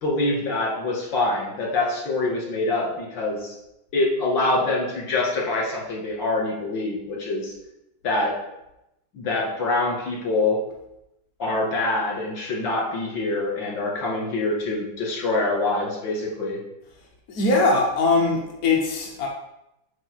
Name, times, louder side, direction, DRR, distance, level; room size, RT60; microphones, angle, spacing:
voice 1, 0.0-3.5 3.9-7.5 8.0-8.3 9.1-10.6 11.4-16.6, left 2 dB, 70° left, -3 dB, 2.7 m, -25 dB
voice 2, 17.3-19.3, left 3 dB, 55° left, -2 dB, 1.4 m, -21 dB
7.7 x 3.4 x 6.3 m, 0.87 s
omnidirectional pair, 2.2 m